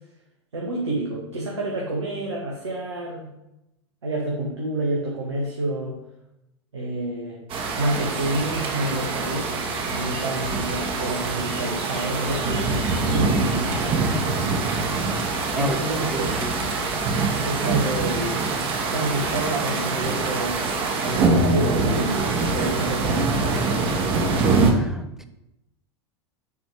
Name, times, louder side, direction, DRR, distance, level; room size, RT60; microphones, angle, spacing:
voice 1, 0.5-3.3 4.0-6.0 6.7-7.4 7.8-9.5 9.9-13.6 15.5-16.3 17.3-20.7 21.0-23.4, right 1 dB, 90° right, -4 dB, 1.3 m, -28 dB
sound 1, 7.5-24.7, right 3 dB, 40° right, 1.3 m, -24 dB
voice 2, 15.5-16.6 17.7-17.8 24.7-25.3, right 1 dB, 5° right, 8 dB, 0.6 m, -32 dB
7.2 x 3.4 x 4.8 m, 0.89 s
hypercardioid pair, 90°, 14 cm